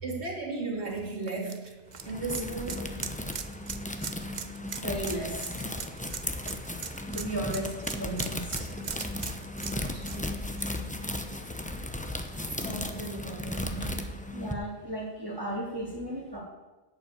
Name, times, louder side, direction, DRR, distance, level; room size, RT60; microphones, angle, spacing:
voice 1, 0.0-1.8 2.0-2.8 5.8-5.9 6.2-6.3 9.9-10.5 11.2-11.3 12.6-14.1, right 3 dB, 65° right, -2 dB, 3.0 m, -36 dB
sound 1, 0.9-11.7 12.1-12.2 13.6-13.7, right 6 dB, 45° right, 0.8 m, -40 dB
sound 2, 1.9-14.5, left 1 dB, 10° left, 0.7 m, -36 dB
voice 2, 4.8-5.5 7.1-8.7 13.8-13.9 14.3-16.4, right 1 dB, 20° right, -8 dB, 3.8 m, -35 dB
11.5 x 5.9 x 8.3 m, 1.1 s
omnidirectional pair, 1.2 m